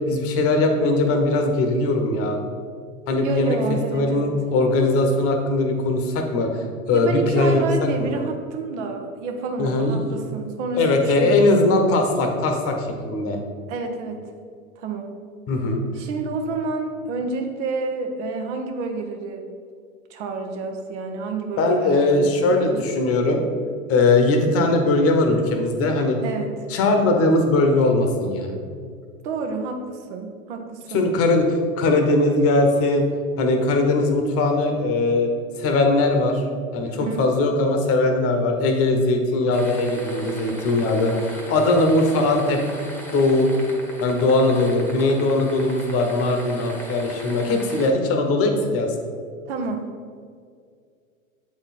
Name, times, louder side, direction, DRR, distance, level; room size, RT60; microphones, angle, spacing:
voice 1, 0.1-2.4 3.1-3.6 3.9-8.1 9.6-10.0 10.7-13.4 15.5-15.8 21.6-23.4 23.9-26.2 26.7-28.5 30.9-33.1 33.4-35.3 35.6-36.4 36.7-42.6 43.1-43.5 44.0-48.9, left 2 dB, 35° left, 4 dB, 1.0 m, -20 dB
voice 2, 3.2-4.3 6.9-11.5 13.7-14.2 14.8-15.1 15.9-19.5 20.1-22.8 26.2-26.5 29.2-31.1 36.8-37.2 49.5-49.9, right 4 dB, 55° right, 4 dB, 1.1 m, -29 dB
sound 1, 39.5-47.9, equal, 5° left, 1.1 m, -38 dB
7.6 x 4.2 x 4.2 m, 2.1 s
hypercardioid pair, 100°, 42 cm